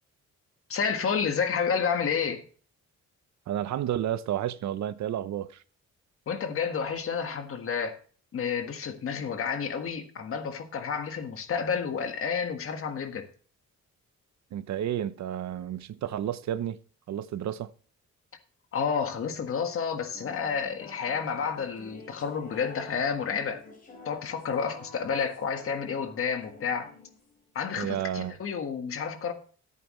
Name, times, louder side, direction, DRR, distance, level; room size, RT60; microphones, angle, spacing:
voice 1, 0.7-2.4 6.3-8.0 8.3-13.3 18.7-23.6 24.0-26.9 27.5-29.3, left 6 dB, 50° left, 1.6 m, -30 dB
voice 2, 3.5-5.6 14.5-16.8 17.1-17.7 27.8-28.4, right 11 dB, 70° right, 0.8 m, -31 dB
sound 1, 20.1-27.5, left 3 dB, 30° left, 3.9 m, -49 dB
14.5 x 8.4 x 3.2 m
wide cardioid pair, 175°, 29 cm